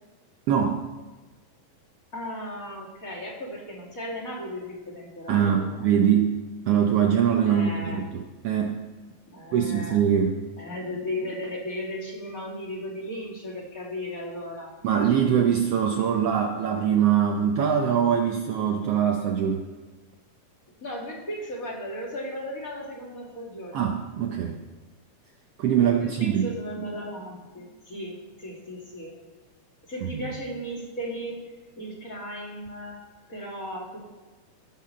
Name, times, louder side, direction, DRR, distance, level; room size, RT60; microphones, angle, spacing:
voice 1, 0.5-0.9 5.3-6.3 6.7-8.8 9.5-10.4 14.8-19.6 23.7-24.6 25.6-26.5 30.0-30.3, right 8 dB, 80° right, 1 dB, 1.3 m, -23 dB
voice 2, 2.1-5.8 7.4-8.0 9.3-10.0 10.6-14.7 20.8-23.9 25.8-29.2 29.9-31.4 31.8-33.0 33.3-34.0, equal, 30° left, -2 dB, 2.2 m, -36 dB
16.0 x 5.7 x 6.5 m, 1.3 s
omnidirectional pair, 3.9 m